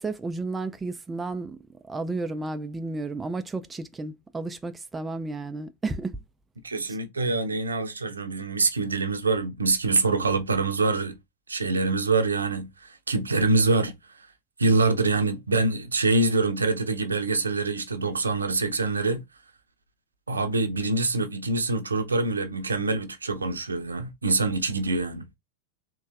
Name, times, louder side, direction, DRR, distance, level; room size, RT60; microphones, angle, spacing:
voice 1, 0.0-1.6 1.9-6.2 6.9-7.0, right 3 dB, 15° right, 0.4 m, -32 dB
voice 2, 6.6-11.2 11.5-14.3 14.6-19.2 20.3-25.3, right 3 dB, 75° right, 0.7 m, -25 dB
3.9 x 3.0 x 2.4 m
figure-of-eight pair, 90°, 0 cm